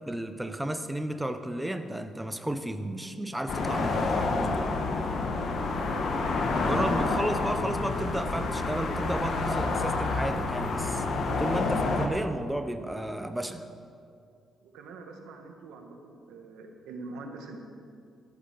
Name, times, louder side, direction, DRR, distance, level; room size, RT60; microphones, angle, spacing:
voice 1, 0.1-4.8 6.6-11.1 11.4-13.6, right 1 dB, 5° right, 8 dB, 0.7 m, -33 dB
sound 1, 3.5-12.1, left 3 dB, 60° left, 1.3 m, -28 dB
voice 2, 6.3-7.3 14.6-17.6, right 3 dB, 90° right, 3 dB, 1.5 m, -44 dB
13.5 x 8.3 x 6.0 m, 2.3 s
cardioid pair, 90°, 0 cm